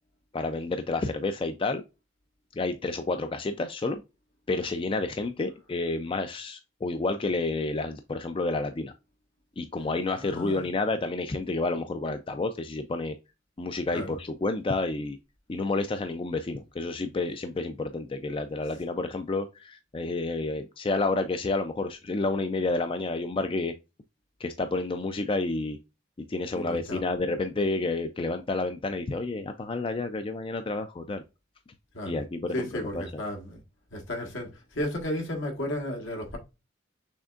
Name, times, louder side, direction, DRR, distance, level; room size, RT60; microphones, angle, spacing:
voice 1, 0.3-1.8 2.6-4.0 4.5-8.9 9.6-13.2 13.6-15.2 15.5-23.7 24.4-25.8 26.3-31.2 32.0-33.2, left 3 dB, 25° left, 0.4 m, -30 dB
voice 2, 10.2-10.7 13.9-14.2 26.5-27.0 31.9-32.1 32.5-33.6 33.9-36.4, left 1 dB, 75° left, 1.5 m, -33 dB
6.3 x 3.3 x 2.4 m
head